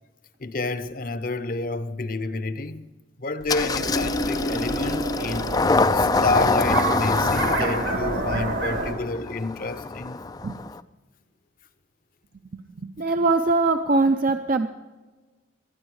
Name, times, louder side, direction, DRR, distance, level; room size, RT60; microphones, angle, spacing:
voice 1, 0.4-2.9 3.2-5.5 5.9-10.2, left 3 dB, 45° left, 0.8 m, -29 dB
Engine starting, 3.5-10.8, left 3 dB, 20° left, 0.3 m, -25 dB
sound 1, 3.5-8.9, right 2 dB, 85° right, 3.5 m, -29 dB
voice 2, 13.0-14.7, right 3 dB, 45° right, 0.6 m, -21 dB
21.5 x 9.9 x 4.8 m
head